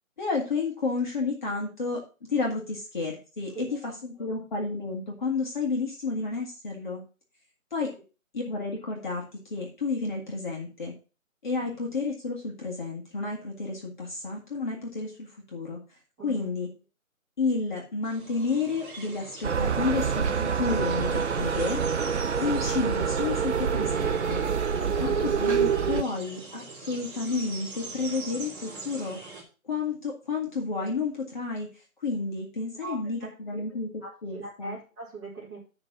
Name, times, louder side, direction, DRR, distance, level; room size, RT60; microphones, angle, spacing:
voice 1, 0.2-2.0 2.3-7.0 7.7-7.9 8.3-10.9 11.4-15.8 16.2-16.7 17.4-21.8 22.4-24.4 25.0-29.2 29.6-31.7 32.0-33.9 34.2-34.8, left 4 dB, 35° left, -2 dB, 2.0 m, -31 dB
voice 2, 3.5-4.3 16.2-16.5 24.8-25.3 32.8-33.6 34.0-35.6, right 2 dB, 10° right, -9 dB, 2.9 m, -42 dB
sound 1, 18.0-29.4, right 3 dB, 35° right, 3.2 m, -43 dB
sound 2, 19.4-26.0, right 6 dB, 55° right, 0.5 m, -26 dB
11.0 x 3.9 x 5.9 m, 0.33 s
figure-of-eight pair, 165°, 43 cm